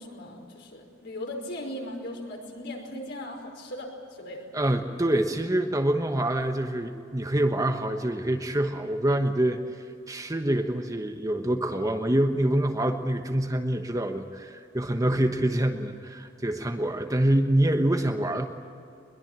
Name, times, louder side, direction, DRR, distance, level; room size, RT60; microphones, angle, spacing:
voice 1, 0.0-4.5, left 1 dB, 55° left, 1 dB, 5.3 m, -38 dB
voice 2, 4.5-9.6 10.1-18.5, right 1 dB, 15° right, 5 dB, 1.2 m, -26 dB
22.0 x 22.0 x 9.0 m, 2.5 s
head